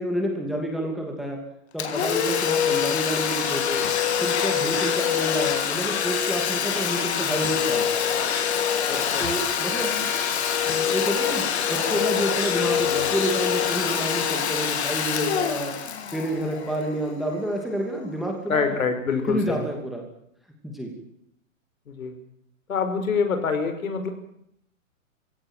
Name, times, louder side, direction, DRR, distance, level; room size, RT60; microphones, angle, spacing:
voice 1, 0.0-1.4 1.7-3.8 4.2-8.0 9.2-10.1 10.7-15.7 16.1-18.8 19.3-20.0 20.6-20.9, right 1 dB, ahead, 1 dB, 2.7 m, -29 dB
Domestic sounds home sounds, 1.8-17.3, left 8 dB, 55° left, 3.2 m, -25 dB
voice 2, 8.9-9.3 18.5-19.7 21.9-22.1 22.7-24.1, left 5 dB, 80° left, 7 dB, 5.6 m, -26 dB
21.5 x 17.0 x 9.1 m, 0.74 s
hypercardioid pair, 165°, 40 cm